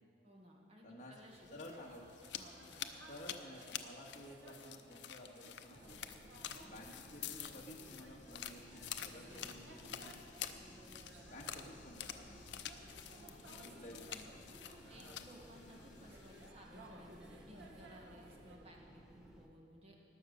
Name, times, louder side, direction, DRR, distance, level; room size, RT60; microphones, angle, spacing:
voice 1, 0.2-1.6 2.3-3.0 9.3-9.6 11.5-11.7 13.1-13.8 14.1-14.3 14.9-20.0, equal, 35° right, -1 dB, 1.9 m, -59 dB
voice 2, 0.8-1.1 1.5-2.0 3.0-6.1 6.6-10.8 11.3-12.9 13.7-14.6, left 1 dB, 45° left, -2 dB, 1.8 m, -54 dB
sound 1, 1.3-16.5, left 10 dB, 75° left, 0.6 m, -49 dB
sound 2, 1.7-18.6, right 1 dB, 80° right, 1.4 m, -59 dB
sound 3, 5.7-19.5, equal, 5° right, 1.0 m, -59 dB
19.0 x 6.4 x 6.5 m, 2.4 s
head